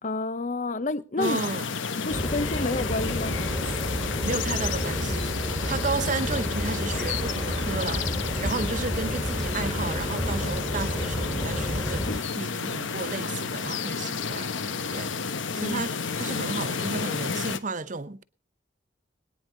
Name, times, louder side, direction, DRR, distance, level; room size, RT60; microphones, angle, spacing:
voice 1, 0.0-1.4 1.9-3.4 15.5-15.8 16.2-16.4, left 2 dB, 40° left, 0.7 m, -30 dB
sound 1, 1.2-17.6, left 5 dB, 75° left, 1.0 m, -31 dB
voice 2, 1.2-1.7 4.2-8.1 8.4-14.5 14.9-15.1 15.5-18.2, right 3 dB, 40° right, 0.8 m, -33 dB
sound 2, 2.1-12.2, equal, 5° right, 1.9 m, -31 dB
21.5 x 9.7 x 3.9 m
head